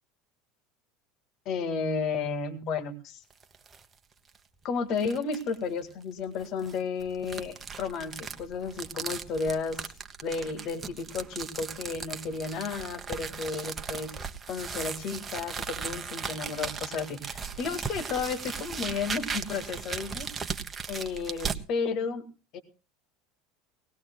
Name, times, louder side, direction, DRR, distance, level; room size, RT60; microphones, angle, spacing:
voice 1, 1.5-3.2 4.6-9.8 10.2-14.1 14.5-20.3 20.9-22.3 22.5-22.6, left 5 dB, 55° left, 7 dB, 2.0 m, -33 dB
sound 1, 3.3-3.8 4.3-4.4 5.0-5.5 6.4-21.6, right 5 dB, 25° right, 1.2 m, -37 dB
19.0 x 18.5 x 2.3 m, 0.32 s
hypercardioid pair, 85°, 0 cm